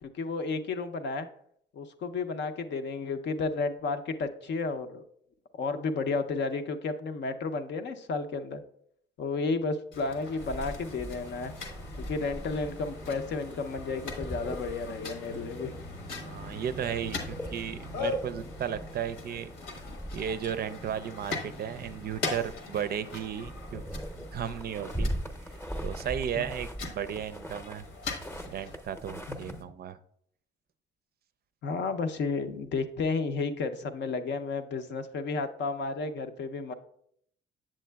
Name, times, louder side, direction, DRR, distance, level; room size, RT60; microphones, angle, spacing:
voice 1, 0.0-1.3 1.7-5.0 5.5-8.6 9.2-11.5 12.0-15.7 26.4-26.5 29.3-29.6 31.6-36.7, left 4 dB, 65° left, 8 dB, 0.6 m, -32 dB
sound 1, 9.9-28.8, left 3 dB, 80° left, 1.2 m, -41 dB
sound 2, 10.4-29.6, equal, 10° left, 0.7 m, -41 dB
voice 2, 16.2-19.5 20.1-23.8 24.1-25.1 25.5-27.8 28.5-30.0, right 8 dB, 50° right, 13 dB, 0.4 m, -35 dB
7.4 x 7.4 x 2.2 m, 0.69 s
cardioid pair, 90°, 20 cm